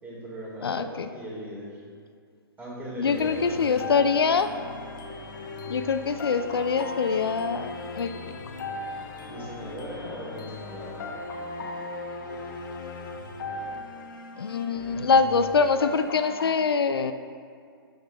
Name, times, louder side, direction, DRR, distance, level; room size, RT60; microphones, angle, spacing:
voice 1, 0.0-1.8 2.6-4.1 9.3-11.0, equal, 10° right, -5 dB, 2.0 m, -38 dB
voice 2, 0.6-1.1 3.0-4.5 5.7-8.1 14.4-17.1, left 5 dB, 70° left, 9 dB, 0.4 m, -24 dB
sound 1, 3.1-16.6, left 2 dB, 50° left, 0.9 m, -37 dB
11.5 x 6.3 x 2.4 m, 2.1 s
figure-of-eight pair, 120°, 13 cm